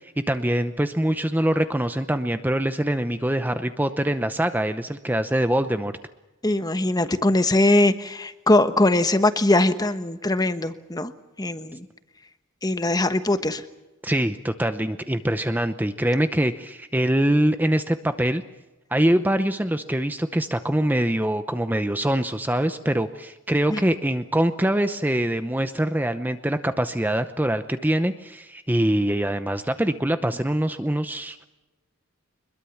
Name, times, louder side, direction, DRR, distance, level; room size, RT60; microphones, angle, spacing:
voice 1, 0.2-5.9 14.0-18.4 18.9-31.4, right 1 dB, 10° right, 9 dB, 0.8 m, -24 dB
voice 2, 6.4-11.1 11.4-11.9 12.6-13.6 23.7-23.8, left 2 dB, 20° left, 10 dB, 1.1 m, -21 dB
24.5 x 21.5 x 7.2 m, 1.1 s
head